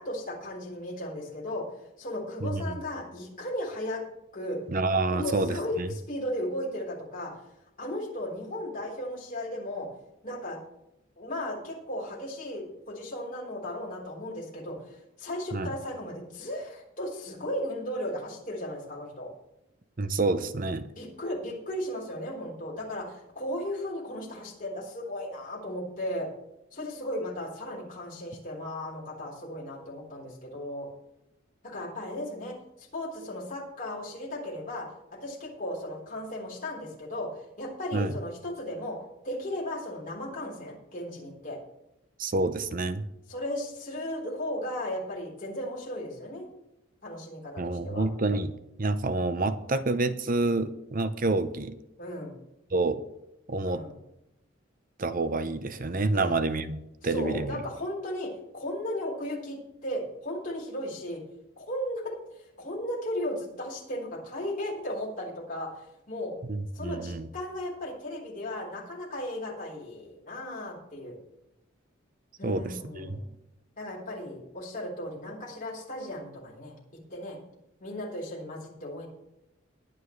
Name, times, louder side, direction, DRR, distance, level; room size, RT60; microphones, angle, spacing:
voice 1, 0.0-1.7 2.0-4.0 4.3-4.6 5.1-5.8 6.1-7.3 7.8-9.9 10.2-10.6 11.2-19.3 21.0-26.3 26.7-30.9 31.6-34.9 35.2-39.0 39.2-41.6 43.3-46.5 47.0-48.1 52.0-52.3 53.7-53.9 56.1-56.3 57.0-61.2 61.6-62.1 62.6-66.3 66.7-71.2 72.4-73.3 73.8-76.7 77.1-77.4 77.8-79.1, left 1 dB, 40° left, -3 dB, 4.0 m, -35 dB
voice 2, 2.4-2.8 4.7-5.9 15.5-15.7 20.0-20.9 37.9-38.1 42.2-43.1 47.6-51.8 52.7-53.0 53.5-53.8 55.0-57.6 66.5-67.3 72.4-73.2, right 2 dB, 45° right, 11 dB, 0.7 m, -28 dB
20.5 x 9.5 x 3.2 m, 0.86 s
head